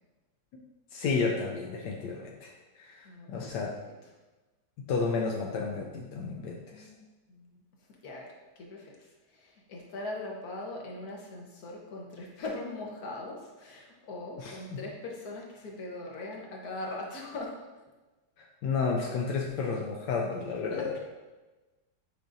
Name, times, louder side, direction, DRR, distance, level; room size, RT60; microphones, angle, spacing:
voice 1, 0.9-3.7 4.9-6.9 14.4-14.8 18.6-21.0, left 4 dB, 80° left, -1 dB, 1.3 m, -32 dB
voice 2, 3.0-3.6 6.7-7.5 8.0-8.3 8.6-8.9 9.3-17.5 20.7-21.0, left 2 dB, 60° left, -1 dB, 1.6 m, -40 dB
9.0 x 5.1 x 2.6 m, 1.2 s
omnidirectional pair, 1.9 m